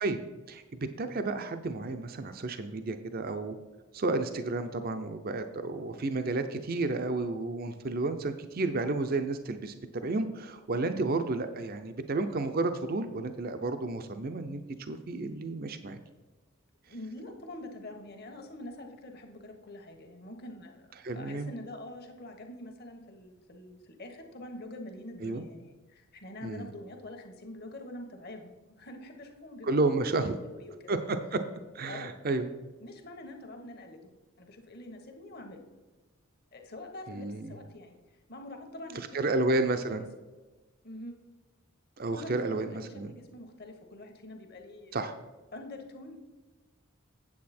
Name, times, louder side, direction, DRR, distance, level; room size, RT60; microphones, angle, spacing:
voice 1, 0.5-3.6 3.9-16.0 21.0-21.5 25.2-25.4 26.4-26.7 29.6-30.4 30.9-31.4 31.7-32.5 37.1-37.6 39.1-40.1 42.0-43.1 44.9-45.1, right 2 dB, 45° right, 8 dB, 0.5 m, -31 dB
voice 2, 16.9-20.9 21.1-31.0 31.9-32.4 32.8-34.1 34.4-35.7 36.5-38.0 38.3-40.0 40.8-41.2 42.1-45.1 45.5-46.2, left 1 dB, 50° left, 4 dB, 1.3 m, -45 dB
8.5 x 7.8 x 4.3 m, 1.2 s
head